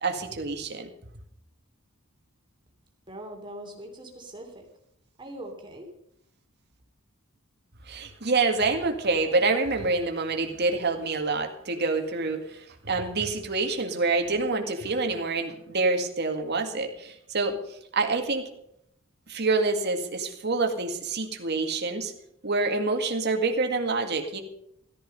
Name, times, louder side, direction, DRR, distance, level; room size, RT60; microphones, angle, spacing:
voice 1, 0.0-0.9 7.9-17.6 17.9-18.5 19.3-22.1 22.4-24.4, right 3 dB, 50° right, 5 dB, 2.0 m, -27 dB
voice 2, 3.1-4.6 5.2-5.9, right 1 dB, 25° right, 2 dB, 2.9 m, -41 dB
14.0 x 13.0 x 5.4 m, 0.75 s
head